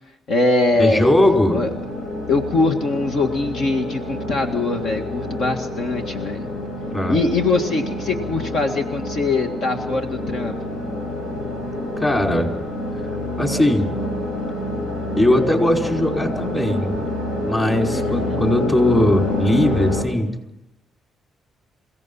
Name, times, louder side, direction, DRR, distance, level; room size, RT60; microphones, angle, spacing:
voice 1, 0.3-1.1 1.5-1.7 2.3-6.5 7.1-10.5 17.9-18.4, left 3 dB, 65° left, 4 dB, 1.8 m, -22 dB
sound 1, 0.7-20.0, left 1 dB, 90° left, 7.1 m, -27 dB
voice 2, 0.8-1.6 6.9-7.2 12.0-12.5 13.4-13.9 15.2-17.0 17.4-20.3, left 1 dB, 20° left, 2 dB, 5.2 m, -19 dB
28.0 x 17.0 x 5.6 m, 0.86 s
cardioid pair, 110°, 0 cm